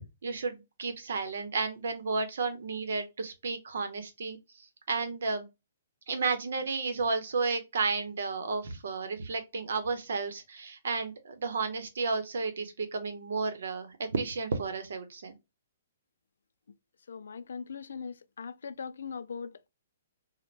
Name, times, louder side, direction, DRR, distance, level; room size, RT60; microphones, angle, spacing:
voice 1, 0.2-5.5 6.1-15.3, right 4 dB, 70° right, 0.8 m, -32 dB
voice 2, 17.1-19.7, left 5 dB, 90° left, 0.3 m, -40 dB
3.2 x 2.1 x 2.4 m
hypercardioid pair, 170°, 0 cm